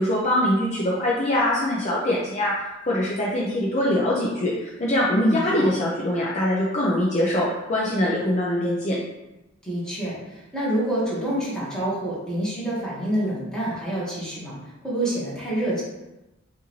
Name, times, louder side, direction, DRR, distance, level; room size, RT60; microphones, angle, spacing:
voice 1, 0.0-9.0, left 1 dB, 35° left, -4 dB, 0.5 m, -23 dB
voice 2, 5.1-5.7 9.6-14.6 14.8-15.8, right 1 dB, 5° left, -9 dB, 1.5 m, -27 dB
5.2 x 2.6 x 3.1 m, 0.99 s
head